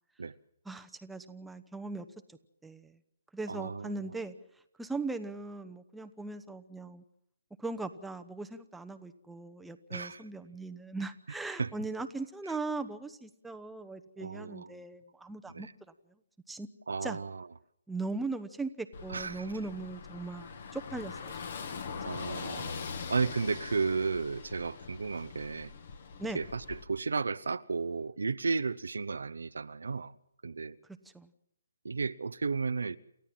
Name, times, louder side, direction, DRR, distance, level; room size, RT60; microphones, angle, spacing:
voice 1, 0.7-2.0 2.6-2.9 3.3-4.3 4.8-7.0 7.6-15.7 16.5-16.7 17.0-17.2 17.9-21.4 22.6-22.7 26.2-26.4 31.1-31.3, right 3 dB, 5° right, 1.0 m, -39 dB
voice 2, 3.5-4.1 9.9-10.2 11.6-11.7 14.2-14.8 15.5-15.7 16.9-17.5 19.1-19.5 22.0-22.7 23.1-25.7 26.3-30.1 30.4-30.8 31.8-33.0, right 4 dB, 75° right, 0.7 m, -33 dB
Car passing by / Engine, 18.9-26.8, left 5 dB, 55° left, 2.4 m, -42 dB
29.0 x 14.0 x 7.4 m
figure-of-eight pair, 145°, 0 cm